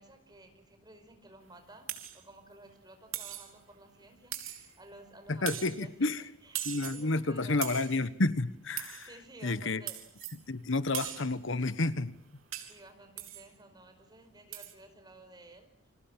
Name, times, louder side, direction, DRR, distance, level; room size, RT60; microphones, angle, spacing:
voice 1, 0.0-7.9 9.0-10.0 12.6-15.7, right 2 dB, 20° right, 7 dB, 5.1 m, -54 dB
sound 1, 1.9-2.2 3.1-3.5 4.3-4.8 5.5-5.8 6.5-7.1 7.6-8.0 8.8-9.1 9.9-10.4 10.9-11.3 12.5-12.8 13.2-13.5 14.5-14.7, right 13 dB, 75° right, 3.6 m, -39 dB
voice 2, 5.3-6.2 6.6-9.1 9.4-9.8 10.5-12.1, left 2 dB, 60° left, 14 dB, 1.1 m, -30 dB
29.5 x 27.0 x 7.4 m, 0.67 s
head